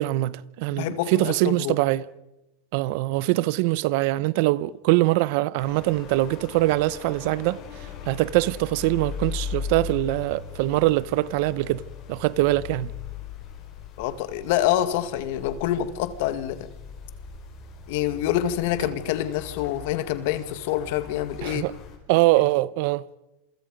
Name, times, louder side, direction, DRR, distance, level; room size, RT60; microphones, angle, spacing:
voice 1, 0.0-2.0 2.7-7.6 8.1-11.8 12.1-12.9 21.4-21.7 22.1-23.1, right 18 dB, 60° right, 0.8 m, -23 dB
voice 2, 0.7-1.8 14.0-16.7 17.9-21.7, left 12 dB, 65° left, 1.9 m, -26 dB
sound 1, 5.6-22.0, left 6 dB, 40° left, 5.3 m, -39 dB
27.5 x 24.0 x 5.3 m
supercardioid pair, 140°, 0 cm